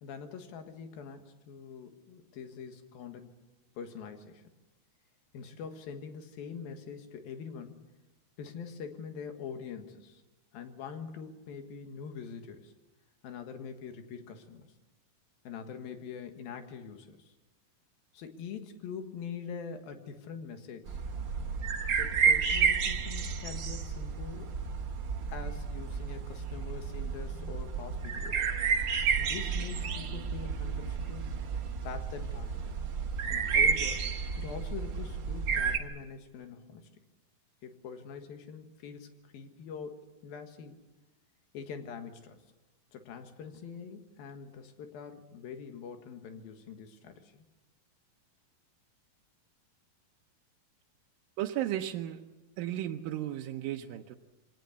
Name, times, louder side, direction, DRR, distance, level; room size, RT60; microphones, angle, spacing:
voice 1, 0.0-3.4 3.8-4.4 5.3-7.8 8.4-10.2 10.5-12.7 13.2-14.7 15.5-17.3 18.1-21.0 21.9-24.6 25.3-28.4 29.2-31.3 31.9-32.8 33.3-36.9 37.6-40.8 41.5-42.4 42.9-47.4, left 6 dB, 80° left, 7 dB, 3.5 m, -44 dB
sound 1, 20.9-35.8, right 6 dB, 60° right, 1.2 m, -31 dB
voice 2, 51.4-52.2 52.6-54.2, right 12 dB, 75° right, 2 dB, 2.5 m, -34 dB
23.5 x 18.5 x 8.2 m, 1.1 s
omnidirectional pair, 4.2 m